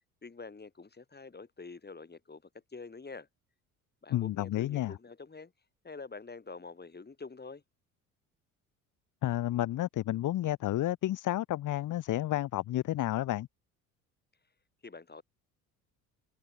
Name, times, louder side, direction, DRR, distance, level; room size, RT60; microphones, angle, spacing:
voice 1, 0.2-2.4 2.7-3.3 4.0-5.5 5.8-7.6 14.8-15.2, left 4 dB, 20° left, 5.8 m, -46 dB
voice 2, 4.1-4.9 9.2-13.5, left 14 dB, 45° left, 1.1 m, -31 dB
figure-of-eight pair, 55°, 45 cm